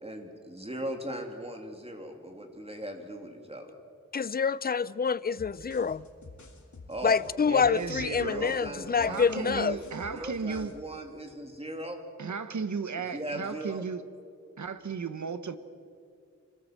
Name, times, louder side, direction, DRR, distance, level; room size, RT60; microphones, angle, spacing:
voice 1, 0.0-3.7 6.9-7.2 8.2-12.0 13.0-13.8, right 1 dB, 20° right, 2.9 m, -39 dB
voice 2, 4.1-6.0 7.0-9.8, left 6 dB, 30° left, 0.5 m, -27 dB
sound 1, 5.4-10.8, left 3 dB, 75° left, 2.6 m, -49 dB
voice 3, 7.5-8.6 9.1-10.7 12.2-14.0 14.6-15.6, right 5 dB, 75° right, 1.2 m, -34 dB
26.0 x 18.5 x 7.5 m
wide cardioid pair, 95°, 29 cm